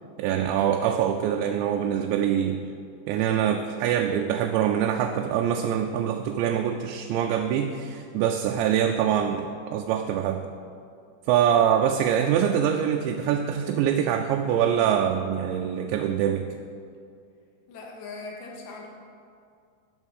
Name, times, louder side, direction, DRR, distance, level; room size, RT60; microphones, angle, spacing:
voice 1, 0.2-2.7 3.1-10.4 11.3-16.5, right 9 dB, 85° right, 3 dB, 2.9 m, -24 dB
voice 2, 17.7-18.9, left 3 dB, 75° left, 0 dB, 3.6 m, -40 dB
15.0 x 6.4 x 6.4 m, 2.3 s
omnidirectional pair, 5.1 m